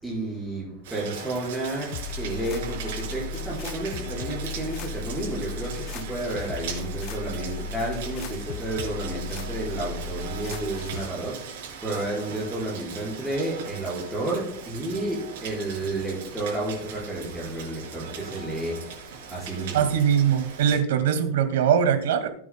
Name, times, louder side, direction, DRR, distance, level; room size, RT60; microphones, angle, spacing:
voice 1, 0.0-19.9, right 2 dB, 5° right, 4.7 m, -31 dB
Rain, 0.8-20.8, right 6 dB, 70° right, 5.2 m, -40 dB
sound 1, 1.9-11.1, left 5 dB, 35° left, 0.5 m, -36 dB
voice 2, 19.7-22.3, right 8 dB, 90° right, 1.9 m, -21 dB
18.5 x 9.5 x 2.2 m
supercardioid pair, 175°, 0 cm